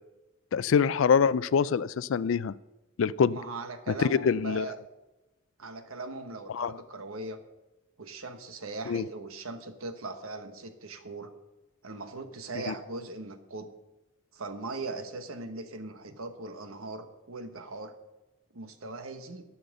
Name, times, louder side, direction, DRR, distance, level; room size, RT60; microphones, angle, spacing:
voice 1, 0.5-2.5 3.0-3.4 4.0-4.7 6.5-6.7 8.9-9.0 12.7-12.8, left 6 dB, 70° left, 18 dB, 0.4 m, -25 dB
voice 2, 3.3-4.8 5.6-7.4 8.0-11.3 11.8-13.7 14.3-17.9 18.5-19.4, right 3 dB, 90° right, 8 dB, 1.2 m, -39 dB
13.0 x 5.8 x 6.5 m, 1.0 s
head